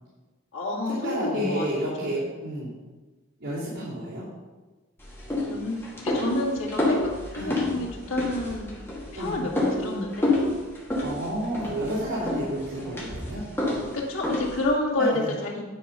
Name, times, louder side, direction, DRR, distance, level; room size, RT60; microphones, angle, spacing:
voice 1, 0.5-2.3 5.5-8.7 9.1-10.4 13.9-15.6, left 2 dB, 80° left, -3 dB, 2.1 m, -29 dB
voice 2, 1.0-2.7 3.4-4.3 7.4-7.7 9.1-9.5 11.0-13.4 15.0-15.3, right 1 dB, 70° right, -11 dB, 3.0 m, -31 dB
sound 1, 5.0-14.7, left 2 dB, 10° left, 2.0 m, -29 dB
10.0 x 4.8 x 5.5 m, 1.2 s
head